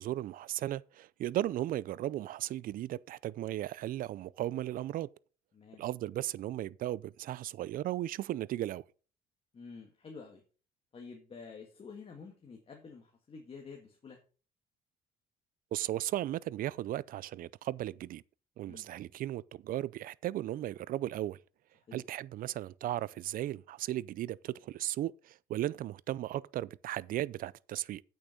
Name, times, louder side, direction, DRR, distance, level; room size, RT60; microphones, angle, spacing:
voice 1, 0.0-5.1 5.8-8.8 15.7-18.2 18.6-21.4 21.9-28.0, right 13 dB, 55° right, 0.4 m, -36 dB
voice 2, 5.5-5.8 9.5-10.4 10.9-14.2 18.6-18.9 21.8-22.0, left 5 dB, 35° left, 1.7 m, -49 dB
8.5 x 6.5 x 5.3 m
cardioid pair, 110°, 17 cm